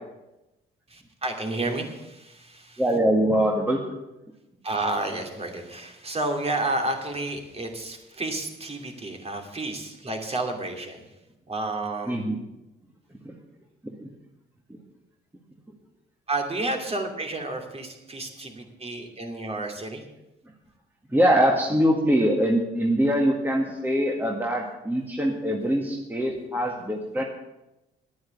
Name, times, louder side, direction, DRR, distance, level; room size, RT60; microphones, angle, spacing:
voice 1, 0.9-2.8 4.6-11.1 11.5-12.2 16.3-20.0, right 2 dB, 30° right, 3 dB, 2.9 m, -31 dB
voice 2, 2.8-3.8 12.1-12.4 13.2-13.3 13.8-14.1 14.7-14.8 21.1-27.2, equal, 10° right, 0 dB, 1.9 m, -23 dB
11.0 x 9.4 x 8.5 m, 0.97 s
cardioid pair, 90°, 20 cm